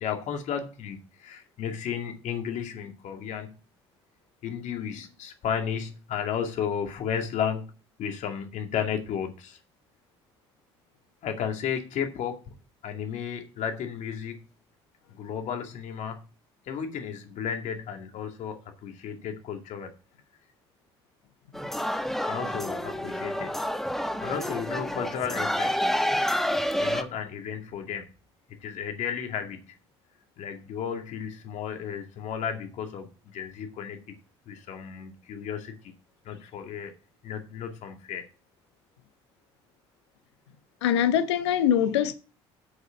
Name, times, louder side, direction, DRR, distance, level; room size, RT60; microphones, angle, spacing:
voice 1, 0.0-3.5 4.4-7.6 8.0-9.6 11.2-12.4 12.8-14.5 15.1-16.2 16.7-19.9 22.3-23.5 24.2-25.7 26.8-28.1 28.6-29.6 30.4-33.1 33.3-34.0 34.5-35.8 36.2-36.9 37.2-38.2, left 8 dB, 60° left, 2.2 m, -33 dB
sound 1, 21.5-27.0, equal, ahead, 1.3 m, -28 dB
voice 2, 40.8-42.1, left 9 dB, 80° left, 1.0 m, -23 dB
8.0 x 6.8 x 5.7 m
hypercardioid pair, 60°, 14 cm